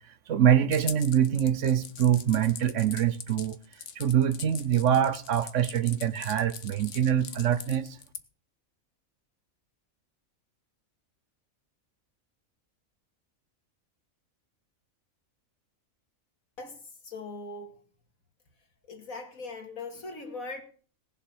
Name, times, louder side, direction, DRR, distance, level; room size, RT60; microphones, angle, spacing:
voice 1, 0.3-3.6 4.0-8.0, right 9 dB, 65° right, 1.1 m, -24 dB
sound 1, 0.7-8.2, left 7 dB, 60° left, 1.4 m, -42 dB
voice 2, 16.6-17.8 18.8-20.6, left 3 dB, 85° left, 2.7 m, -40 dB
18.5 x 7.3 x 6.4 m
omnidirectional pair, 1.4 m